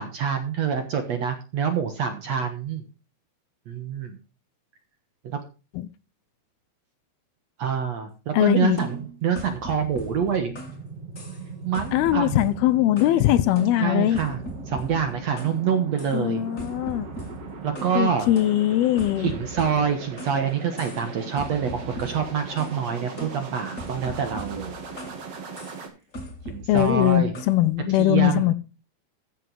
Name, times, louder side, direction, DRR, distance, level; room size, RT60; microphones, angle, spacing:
voice 1, 0.0-2.8 3.7-4.2 5.2-5.4 7.6-10.5 11.7-12.5 13.8-16.4 17.6-18.3 19.2-24.8 25.0-25.2 26.5-27.4 27.8-28.5, right 7 dB, 60° right, 2.0 m, -26 dB
voice 2, 8.3-8.8 11.9-14.2 16.1-17.1 17.9-19.3 26.7-28.5, left 14 dB, 80° left, 2.6 m, -21 dB
sound 1, 8.8-10.8 11.2-11.5 11.7-13.2 13.6-15.6 16.0-16.2 16.6-18.0 18.4-20.4 20.8-21.1 21.4-22.8 23.2-25.2 25.6-25.8 26.1-27.6, equal, 25° left, 2.1 m, -40 dB
sound 2, 9.4-25.9, right 5 dB, 40° right, 3.0 m, -39 dB
14.0 x 7.6 x 4.7 m
omnidirectional pair, 4.6 m